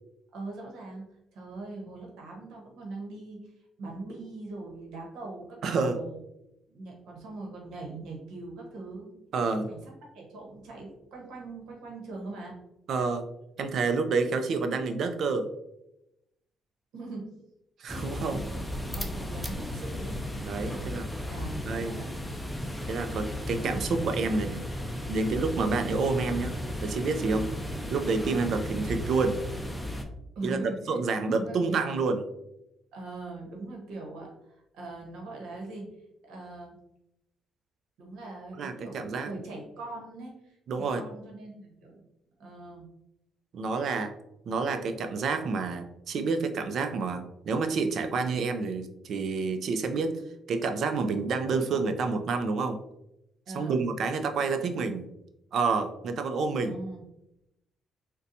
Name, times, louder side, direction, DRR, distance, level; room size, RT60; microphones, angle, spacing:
voice 1, 0.3-1.0 1.3-3.5 3.8-6.2 6.7-9.8 10.1-12.6 16.9-17.3 18.3-20.2 20.5-22.1 30.3-31.0 31.2-31.9 32.9-35.9 36.3-36.8 38.0-42.0 42.4-42.9 53.5-53.8 56.4-57.0, right 2 dB, 85° right, -1 dB, 0.9 m, -41 dB
voice 2, 5.6-6.0 9.3-9.7 12.9-13.2 13.6-15.5 17.8-18.4 20.4-21.1 21.7-22.0 22.9-24.6 25.1-27.5 27.9-29.4 30.4-32.3 38.6-39.3 40.7-41.0 43.5-44.1 44.5-50.2 50.5-52.8 53.5-55.1 55.5-56.7, right 4 dB, 65° right, 8 dB, 0.4 m, -28 dB
sound 1, 17.9-30.0, left 1 dB, 5° left, 0.4 m, -35 dB
4.0 x 2.2 x 2.6 m, 0.85 s
cardioid pair, 90°, 0 cm